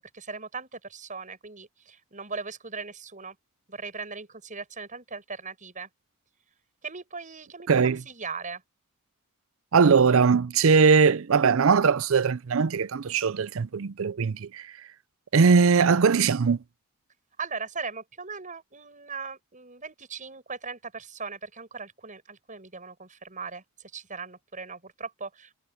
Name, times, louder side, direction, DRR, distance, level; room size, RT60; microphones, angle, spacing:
voice 1, 0.0-3.4 3.7-5.9 6.8-8.6 17.4-25.6, right 4 dB, 35° right, 7.2 m, -39 dB
voice 2, 7.7-8.0 9.7-14.7 15.3-16.6, right 5 dB, 65° right, 0.5 m, -20 dB
head